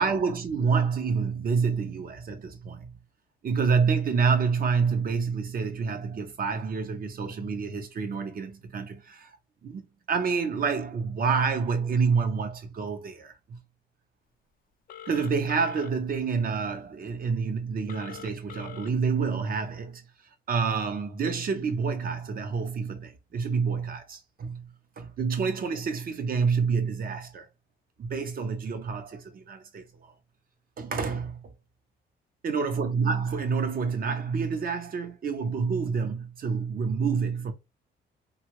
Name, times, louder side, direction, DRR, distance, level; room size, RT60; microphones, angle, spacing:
voice 1, 0.0-2.9 3.4-9.4 9.6-9.8 10.1-13.6 15.1-20.0 20.5-24.7 25.0-27.5 28.0-30.1 30.8-31.5 32.4-37.5, right 5 dB, 45° right, 0.7 m, -28 dB
Telephone, 14.9-15.9 17.9-18.9, left 10 dB, 45° left, 0.4 m, -43 dB
2.7 x 2.3 x 3.0 m
cardioid pair, 90°, 20 cm